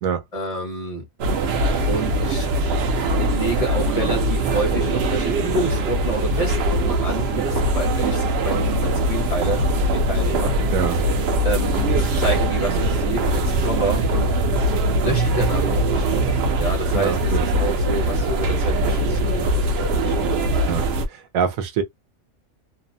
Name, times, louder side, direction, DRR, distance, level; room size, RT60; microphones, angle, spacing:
voice 1, 0.3-1.0 1.9-2.5 3.3-10.6 11.4-14.3 15.0-20.5, right 1 dB, 30° left, 0.8 m, -28 dB
sound 1, 1.2-21.1, right 1 dB, 65° right, 0.7 m, -21 dB
voice 2, 10.7-11.0 16.9-17.4 20.7-21.8, right 7 dB, 85° right, 1.1 m, -25 dB
2.7 x 2.1 x 2.5 m
omnidirectional pair, 1.4 m